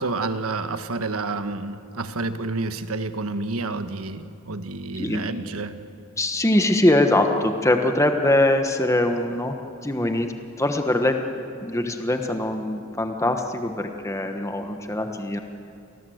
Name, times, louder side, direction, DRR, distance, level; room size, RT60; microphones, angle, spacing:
voice 1, 0.0-5.8, right 3 dB, 80° right, 9 dB, 1.4 m, -29 dB
voice 2, 6.2-9.5 9.8-10.3 10.6-11.3 11.6-15.4, left 1 dB, 15° left, 5 dB, 1.2 m, -22 dB
28.5 x 18.5 x 8.0 m, 2.5 s
head